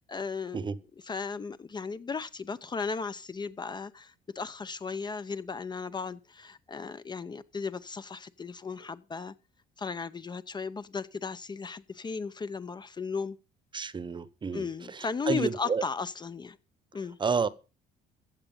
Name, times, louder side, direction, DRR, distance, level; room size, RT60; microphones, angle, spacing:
voice 1, 0.1-0.7 1.1-9.3 9.8-13.4 14.5-16.6 16.9-17.2, left 5 dB, 25° left, 0.7 m, -35 dB
voice 2, 13.7-15.8 17.2-17.5, right 5 dB, 30° right, 1.0 m, -30 dB
15.0 x 8.5 x 5.4 m
cardioid pair, 110°, 17 cm